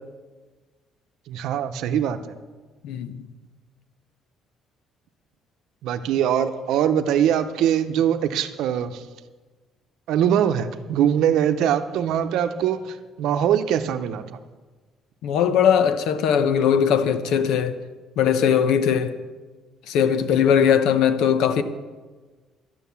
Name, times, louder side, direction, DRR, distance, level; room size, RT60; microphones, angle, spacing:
voice 1, 1.3-2.2 5.8-9.0 10.1-14.2, right 9 dB, 75° right, 0.8 m, -22 dB
voice 2, 2.8-3.3 15.2-17.8 18.2-19.1 19.9-21.6, left 8 dB, 80° left, 0.8 m, -20 dB
11.5 x 9.4 x 7.0 m
cardioid pair, 155°, 0 cm